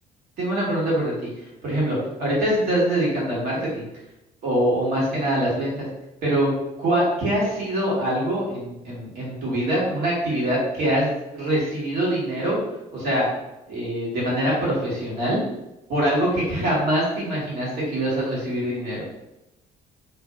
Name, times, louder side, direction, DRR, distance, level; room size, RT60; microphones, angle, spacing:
voice 1, 0.4-1.3 1.6-3.9 4.4-5.9 6.2-6.5 6.8-12.6 12.9-13.3 13.7-15.4 15.9-19.0, right 1 dB, 70° right, -5 dB, 1.4 m, -24 dB
2.5 x 2.0 x 3.5 m, 0.92 s
cardioid pair, 115°, 16 cm